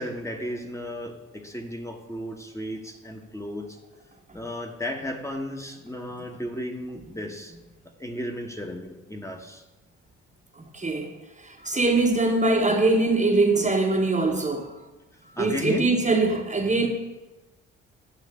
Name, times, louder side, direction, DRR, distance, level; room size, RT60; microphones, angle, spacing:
voice 1, 0.0-3.8 4.3-7.5 8.0-9.6 15.4-15.9, left 1 dB, 10° left, 3 dB, 1.0 m, -34 dB
voice 2, 10.7-11.1 11.4-14.7 15.4-16.9, right 2 dB, 20° right, 2 dB, 1.0 m, -22 dB
9.0 x 3.2 x 6.4 m, 1.1 s
hypercardioid pair, 45°, 35 cm